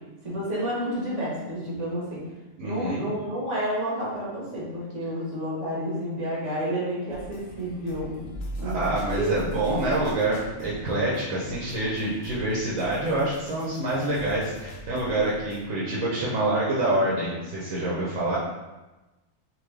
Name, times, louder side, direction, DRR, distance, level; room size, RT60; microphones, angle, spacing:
voice 1, 0.2-2.2 2.6-8.3 8.6-8.8 9.1-9.3 9.9-10.0, right 1 dB, 65° right, -6 dB, 1.5 m, -30 dB
voice 2, 2.6-3.0 8.6-18.4, right 1 dB, 85° right, -6 dB, 1.2 m, -26 dB
sound 1, 7.1-15.7, equal, 65° left, 0.5 m, -40 dB
3.8 x 2.7 x 3.2 m, 1.1 s
omnidirectional pair, 1.4 m